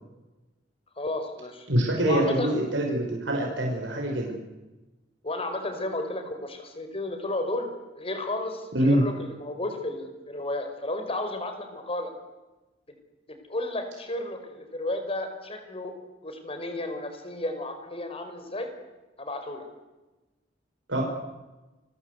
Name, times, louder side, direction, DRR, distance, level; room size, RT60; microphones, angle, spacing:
voice 1, 1.0-1.7 2.0-2.6 5.2-7.7 7.9-12.1 13.3-15.9 16.2-18.7 19.2-19.6, left 2 dB, 30° left, 6 dB, 5.0 m, -33 dB
voice 2, 1.7-4.3 8.7-9.0 20.9-21.0, right 1 dB, 85° right, 0 dB, 5.7 m, -24 dB
29.5 x 22.0 x 8.2 m, 1.1 s
head